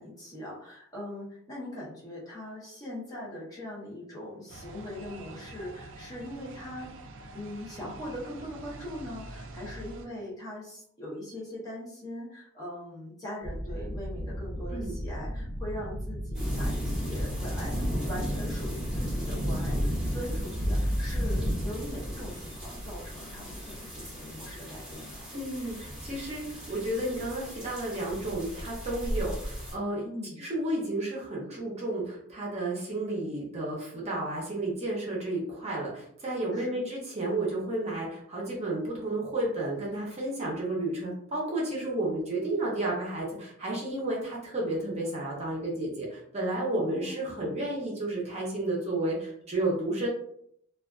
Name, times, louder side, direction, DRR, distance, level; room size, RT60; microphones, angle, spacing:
voice 1, 0.0-6.9 7.3-25.3 30.0-30.4 36.5-36.9 46.8-47.4, left 1 dB, 15° left, -6 dB, 0.7 m, -41 dB
sound 1, 4.5-10.1, right 2 dB, 60° right, 0.3 m, -45 dB
sound 2, 13.4-20.0, equal, 75° left, 0.8 m, -36 dB
sound 3, 16.3-29.7, equal, 5° right, 1.1 m, -34 dB
voice 2, 25.3-30.0 30.4-50.1, right 2 dB, 30° right, -3 dB, 0.7 m, -32 dB
2.4 x 2.3 x 2.3 m, 0.69 s
head